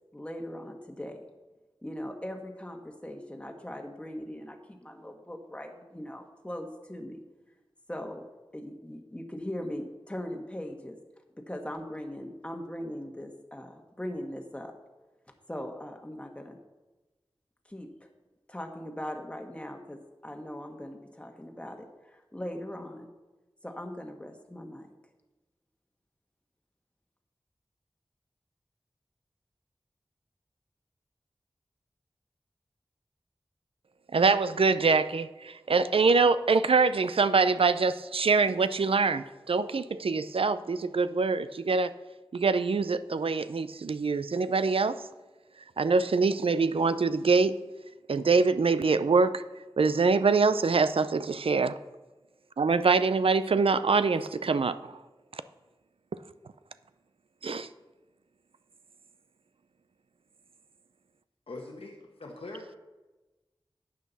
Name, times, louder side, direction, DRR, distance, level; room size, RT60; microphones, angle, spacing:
voice 1, 0.1-1.2 1.8-7.2 7.9-8.2 8.5-11.0 11.4-14.7 15.5-16.6 17.7-18.1 18.5-23.1 23.6-24.9, left 1 dB, 10° left, 3 dB, 1.3 m, -40 dB
voice 2, 34.1-41.9 42.3-45.0 45.8-47.6 48.1-49.4 49.8-51.8 52.6-54.8 55.3-55.4 57.4-57.7, right 4 dB, 80° right, 13 dB, 0.5 m, -24 dB
voice 3, 61.5-62.8, left 2 dB, 85° left, 1 dB, 1.2 m, -42 dB
12.0 x 8.5 x 4.1 m, 1.1 s
wide cardioid pair, 65°, 9 cm